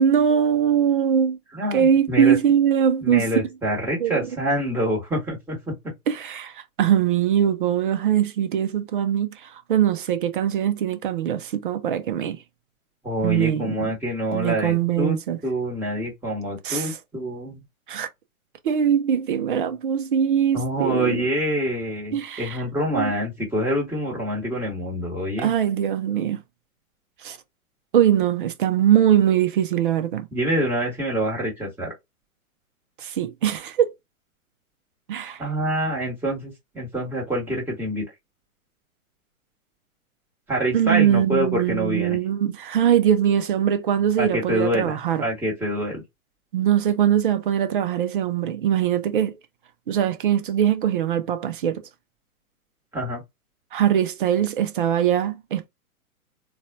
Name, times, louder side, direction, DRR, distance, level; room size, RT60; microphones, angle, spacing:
voice 1, 0.0-1.4 1.7-3.3 4.0-4.3 6.1-12.4 13.2-13.9 14.3-15.4 16.6-16.9 17.9-18.1 18.6-21.2 22.1-22.6 22.9-23.1 25.4-26.4 27.2-27.4 27.9-30.3 33.0-33.9 35.1-35.4 40.7-45.2 46.5-49.3 49.9-51.9 53.7-55.7, right 9 dB, 35° right, 0.6 m, -22 dB
voice 2, 1.5-2.4 3.0-5.7 13.0-17.6 20.5-25.5 30.3-31.9 35.4-38.0 40.5-42.2 44.2-46.0 52.9-53.2, equal, 5° right, 1.4 m, -26 dB
4.1 x 2.4 x 2.5 m
figure-of-eight pair, 120°, 44 cm